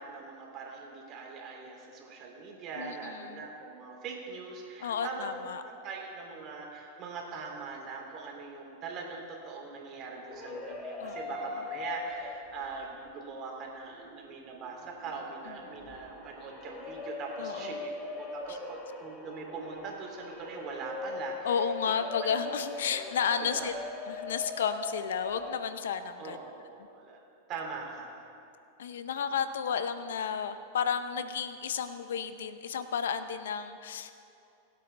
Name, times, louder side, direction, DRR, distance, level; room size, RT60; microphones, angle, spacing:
voice 1, 0.0-5.3 5.6-21.6 22.2-22.4 22.8-23.1 23.4-23.7 26.2-27.2 27.5-28.3, right 4 dB, 40° right, 0 dB, 2.8 m, -42 dB
voice 2, 2.7-3.5 4.8-5.6 11.0-11.2 15.5-16.0 17.4-17.8 18.5-18.6 21.4-23.7 24.1-26.4 28.8-34.1, left 7 dB, 80° left, 11 dB, 0.7 m, -32 dB
sound 1, 10.0-12.8 13.2-13.3 13.9-25.6, left 3 dB, 25° left, 2.6 m, -41 dB
23.0 x 8.4 x 3.4 m, 2.6 s
hypercardioid pair, 115°, 0 cm